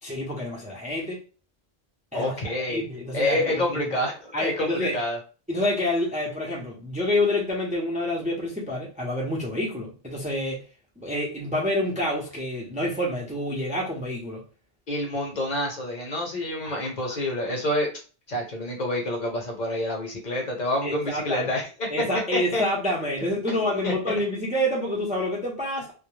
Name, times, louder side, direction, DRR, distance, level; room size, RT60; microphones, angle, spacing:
voice 1, 0.0-1.2 2.1-2.3 2.7-3.8 4.3-5.0 5.5-10.6 11.0-14.4 16.6-17.2 20.8-21.5 21.9-25.9, left 1 dB, 10° right, 0.5 m, -28 dB
voice 2, 2.1-2.8 3.1-5.2 14.9-17.9 18.3-21.7 22.5-22.6 23.5-23.6 23.8-23.9, left 1 dB, 50° left, 0.8 m, -28 dB
2.3 x 2.1 x 3.1 m
omnidirectional pair, 1.0 m